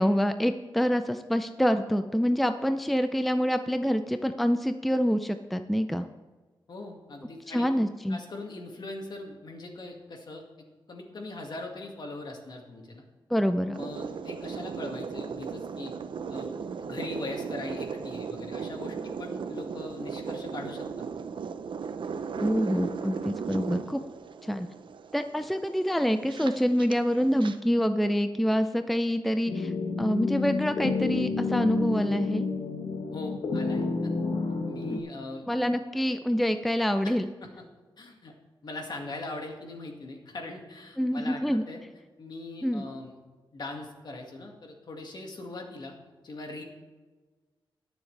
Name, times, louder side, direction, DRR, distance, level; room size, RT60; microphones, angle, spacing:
voice 1, 0.0-6.1 7.5-8.2 13.3-13.7 22.4-24.0 24.4-24.7 25.1-29.7 30.0-32.5 34.9-35.0 35.5-37.3 41.0-41.6 42.6-42.8, equal, ahead, 9 dB, 0.4 m, -26 dB
voice 2, 6.7-7.7 8.1-10.4 10.9-13.0 13.7-15.9 16.3-16.5 16.8-21.2 33.1-33.8 34.7-35.4 37.0-37.1 38.0-38.3 38.6-41.8 42.2-43.2 43.5-46.0 46.2-46.6, left 2 dB, 55° left, 2 dB, 1.9 m, -40 dB
sound 1, 13.7-27.6, right 6 dB, 70° right, 0.6 m, -36 dB
sound 2, 29.5-35.0, left 4 dB, 70° left, 1.2 m, -30 dB
21.5 x 7.2 x 3.3 m, 1.3 s
wide cardioid pair, 120°, 9 cm